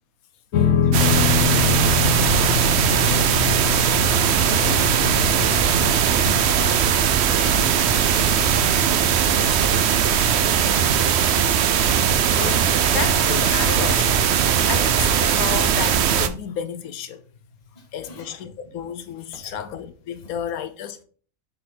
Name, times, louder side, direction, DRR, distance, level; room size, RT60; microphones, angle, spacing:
sound 1, 0.5-13.0, left 5 dB, 65° left, 1.0 m, -26 dB
voice 1, 0.8-3.6 4.3-8.7 9.1-10.7 17.7-18.3 19.4-19.5 20.2-20.3, left 3 dB, 30° left, 1.7 m, -39 dB
sound 2, 0.9-16.3, right 8 dB, 60° right, 0.8 m, -19 dB
voice 2, 12.2-17.2 17.9-21.0, left 9 dB, 85° left, 1.1 m, -32 dB
8.2 x 4.3 x 4.1 m
omnidirectional pair, 1.5 m